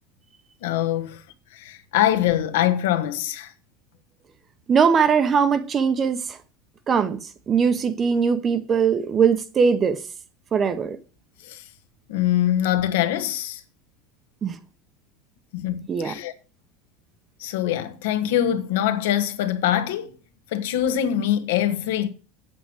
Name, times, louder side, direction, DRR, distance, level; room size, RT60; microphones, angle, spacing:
voice 1, 0.6-1.2 1.5-3.5 11.4-11.6 12.1-13.6 15.5-16.3 17.4-20.2 20.5-22.1, left 11 dB, 75° left, 1.5 m, -23 dB
voice 2, 4.7-6.4 6.9-10.0 10.5-11.0 14.4-14.5 15.9-16.2, right 6 dB, 20° right, 0.7 m, -21 dB
8.1 x 7.9 x 6.1 m
supercardioid pair, 180°, 0 cm